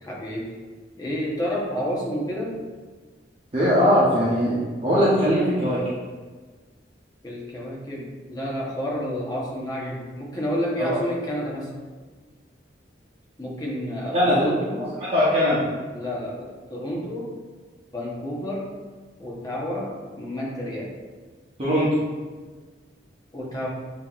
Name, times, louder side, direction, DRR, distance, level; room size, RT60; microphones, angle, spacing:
voice 1, 0.0-0.6 1.0-2.6 7.2-11.7 13.4-14.9 15.9-17.3 17.9-18.7 19.2-21.0 23.3-23.7, equal, 20° left, -4 dB, 0.9 m, -30 dB
voice 2, 3.5-5.8 10.8-11.0 14.1-14.5 15.1-15.7 21.6-21.9, equal, 30° right, -9 dB, 0.9 m, -20 dB
7.3 x 2.9 x 2.4 m, 1.4 s
head